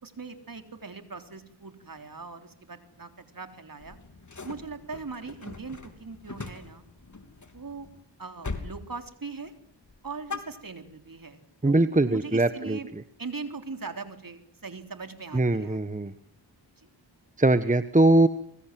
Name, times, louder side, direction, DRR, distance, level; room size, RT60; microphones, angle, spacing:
voice 1, 0.0-4.0 4.4-6.8 7.5-7.9 8.2-9.5 10.0-12.9 13.2-16.1 16.8-16.9, right 4 dB, 50° right, 7 dB, 3.8 m, -40 dB
sound 1, 3.8-8.0 8.4-8.8 9.1-9.5 9.9-11.1, left 4 dB, 40° left, 3.3 m, -41 dB
voice 2, 11.6-12.8 15.3-16.1 17.4-18.3, right 2 dB, 15° right, 12 dB, 1.2 m, -21 dB
26.0 x 23.5 x 7.8 m, 0.67 s
cardioid pair, 50°, 44 cm